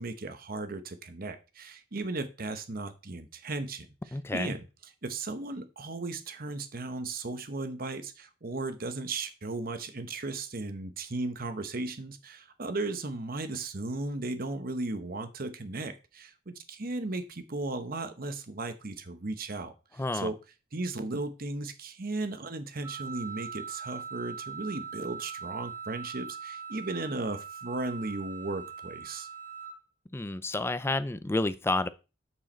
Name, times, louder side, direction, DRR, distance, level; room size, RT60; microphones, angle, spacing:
voice 1, 0.0-3.9 4.3-4.6 5.0-20.4 20.7-29.3, right 2 dB, 50° right, 1.0 m, -36 dB
voice 2, 4.1-4.5 20.0-20.3 30.1-31.9, left 2 dB, 15° left, 0.4 m, -30 dB
Wind instrument woodwind instrument, 22.8-29.8, right 6 dB, 15° right, 2.2 m, -41 dB
8.9 x 4.7 x 4.4 m
head